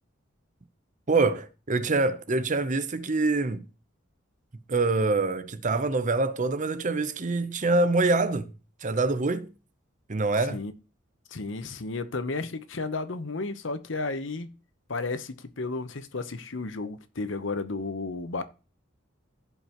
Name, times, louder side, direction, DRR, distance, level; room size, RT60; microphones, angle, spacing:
voice 1, 1.1-3.6 4.7-8.5 8.8-9.5 10.1-10.6, right 3 dB, 40° right, 0.8 m, -25 dB
voice 2, 11.3-14.5 14.9-18.4, left 3 dB, 65° left, 0.9 m, -33 dB
16.0 x 5.5 x 3.0 m
head